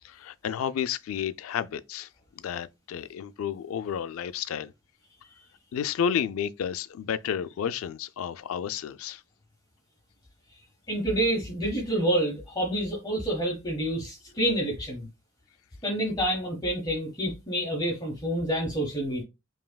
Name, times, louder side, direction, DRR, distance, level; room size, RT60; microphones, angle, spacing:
voice 1, 0.0-2.1 2.4-4.7 5.7-9.2, left 8 dB, 80° left, 0.3 m, -31 dB
voice 2, 10.9-15.1 15.8-19.2, right 1 dB, 20° left, 1.1 m, -28 dB
5.4 x 2.7 x 2.2 m
head